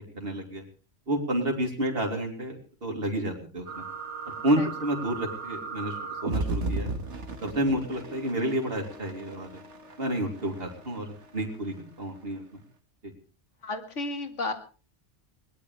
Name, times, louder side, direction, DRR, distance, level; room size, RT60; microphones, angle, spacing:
voice 1, 0.1-0.6 1.1-3.9 4.3-6.9 7.4-9.6 10.0-11.1 11.3-12.6 13.0-13.1, right 1 dB, 55° right, 1 dB, 3.5 m, -30 dB
sound 1, 3.7-12.0, right 3 dB, 75° right, 2.1 m, -36 dB
voice 2, 13.6-14.5, left 2 dB, 90° left, 7 dB, 2.4 m, -32 dB
21.5 x 19.0 x 3.3 m, 0.36 s
omnidirectional pair, 1.2 m